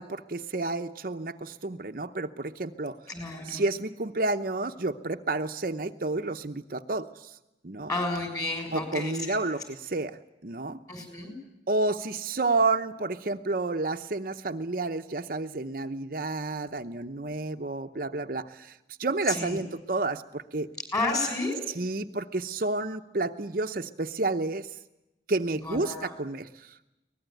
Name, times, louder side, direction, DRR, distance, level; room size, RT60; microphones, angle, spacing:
voice 1, 0.0-3.0 3.4-7.3 7.6-7.9 8.7-10.2 10.4-10.8 11.7-20.7 21.7-24.7 25.3-26.7, right 3 dB, 50° right, 6 dB, 0.9 m, -30 dB
voice 2, 3.1-3.6 7.9-9.4 10.9-11.3 19.3-19.6 20.9-21.6 25.6-26.1, left 2 dB, 20° left, 5 dB, 6.8 m, -31 dB
23.5 x 19.5 x 9.3 m, 0.94 s
head